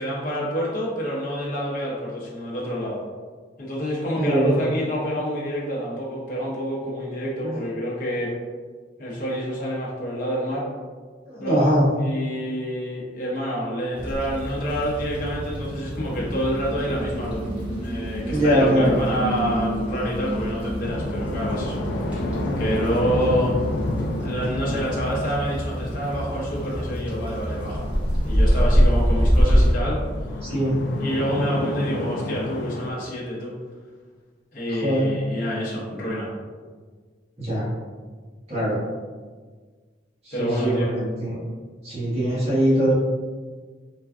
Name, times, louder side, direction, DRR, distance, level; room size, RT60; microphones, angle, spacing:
voice 1, 0.0-3.0 3.6-8.3 9.0-10.7 11.4-11.7 12.0-17.5 17.8-22.2 22.6-23.5 24.2-27.9 28.2-30.0 31.0-33.5 34.5-36.3 40.3-40.9, equal, 45° left, -6 dB, 0.7 m, -27 dB
voice 2, 4.2-4.6 7.4-7.5 11.3-11.8 18.3-19.0 30.4-30.8 34.7-35.1 37.4-37.7 38.5-38.8 40.2-41.4 41.8-42.9, equal, 35° right, -8 dB, 1.0 m, -22 dB
sound 1, 13.9-29.7, equal, 10° right, 0.7 m, -25 dB
sound 2, 20.8-32.9, left 1 dB, 75° left, 0.3 m, -31 dB
3.3 x 2.2 x 2.4 m, 1.5 s
head